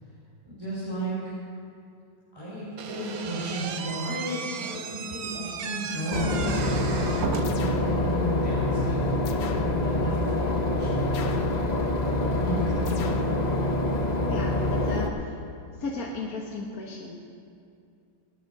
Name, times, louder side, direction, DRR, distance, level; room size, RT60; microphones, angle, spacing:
voice 1, 0.4-1.1 2.3-9.1 9.5-11.1 12.2-13.1, right 1 dB, 10° right, -10 dB, 4.5 m, -33 dB
Slam / Squeak, 2.8-7.8, right 6 dB, 55° right, 1.1 m, -35 dB
Boat Water vehicle / Engine, 6.1-15.1, left 2 dB, 30° left, 0.8 m, -26 dB
sound 1, 7.4-8.0 9.3-9.8 11.1-11.6 12.9-13.4, left 6 dB, 75° left, 1.8 m, -39 dB
voice 2, 14.3-15.3 15.8-17.2, left 3 dB, 50° left, -2 dB, 1.7 m, -35 dB
19.0 x 11.0 x 6.7 m, 2.4 s
omnidirectional pair, 2.2 m